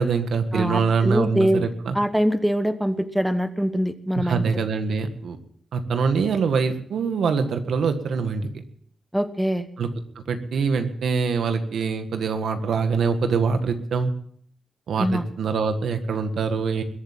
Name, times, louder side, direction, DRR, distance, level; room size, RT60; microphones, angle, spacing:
voice 1, 0.0-2.0 4.1-5.4 5.7-8.6 9.8-9.9 10.1-14.1 14.9-16.8, right 5 dB, 85° right, 8 dB, 1.6 m, -24 dB
voice 2, 0.5-1.7 1.9-4.4 9.1-9.7 15.0-15.2, equal, 5° right, 11 dB, 1.1 m, -23 dB
21.5 x 8.0 x 7.4 m, 0.63 s
cardioid pair, 100°, 0 cm